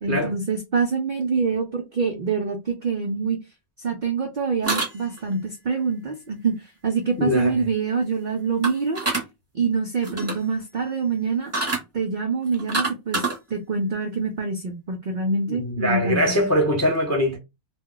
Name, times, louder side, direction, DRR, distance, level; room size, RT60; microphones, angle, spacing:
voice 1, 0.0-3.4 3.8-9.0 9.5-11.5 11.9-13.2 13.5-16.4, right 4 dB, 70° right, 0.4 m, -25 dB
sound 1, 4.6-5.3 8.6-9.3 10.0-10.4 11.5-11.8 12.5-13.4, right 3 dB, 15° right, 0.6 m, -26 dB
voice 2, 7.2-7.7 15.5-17.4, equal, 25° left, 0.3 m, -22 dB
2.3 x 2.1 x 3.7 m
omnidirectional pair, 1.4 m